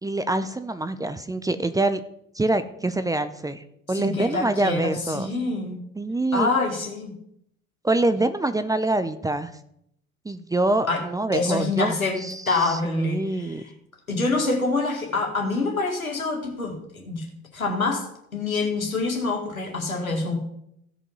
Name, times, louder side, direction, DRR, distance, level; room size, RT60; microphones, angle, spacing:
voice 1, 0.0-2.0 2.3-5.3 6.0-6.5 7.8-9.5 10.2-13.6, right 2 dB, 10° right, 10 dB, 0.6 m, -25 dB
voice 2, 3.9-5.8 6.3-7.2 10.9-11.0 11.3-12.2 12.5-13.7 14.1-17.3 17.5-20.4, left 3 dB, 90° left, 2 dB, 2.1 m, -26 dB
15.5 x 5.5 x 5.4 m, 0.75 s
figure-of-eight pair, 70°, 41 cm